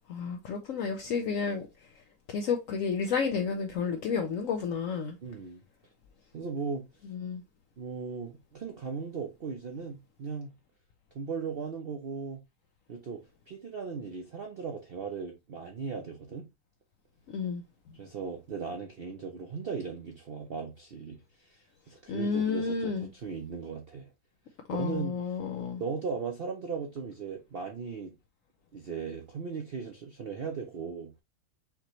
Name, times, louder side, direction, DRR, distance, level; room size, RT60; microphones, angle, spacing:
voice 1, 0.1-1.6 2.3-5.1 7.1-7.4 17.3-17.6 22.1-23.1 24.7-25.8, left 5 dB, 65° left, 0.9 m, -31 dB
voice 2, 5.2-5.6 6.3-6.9 7.8-10.6 11.1-12.4 12.9-16.5 17.9-24.1 24.7-25.2 25.8-28.1 28.7-31.1, right 5 dB, 55° right, 0.7 m, -37 dB
5.8 x 2.9 x 3.0 m
omnidirectional pair, 1.7 m